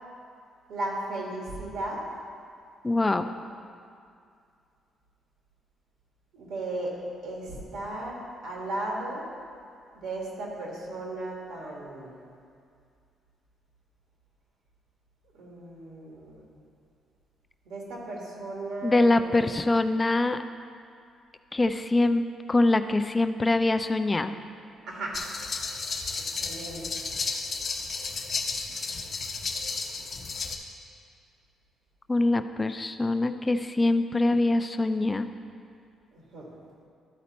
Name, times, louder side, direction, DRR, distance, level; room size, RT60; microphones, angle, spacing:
voice 1, 0.7-2.0 6.3-6.9 7.2-9.3 9.9-12.1 15.3-16.4 17.7-19.4 24.8-25.2 26.4-26.8 36.1-36.5, right 2 dB, 85° right, -3 dB, 1.9 m, -35 dB
voice 2, 2.8-3.3 18.8-20.4 21.5-22.2 22.5-24.4 32.1-35.3, left 2 dB, 20° left, 9 dB, 0.4 m, -24 dB
sound 1, 25.1-30.6, left 4 dB, 45° left, 0.8 m, -33 dB
12.0 x 4.2 x 4.2 m, 2.4 s
cardioid pair, 90°, 0 cm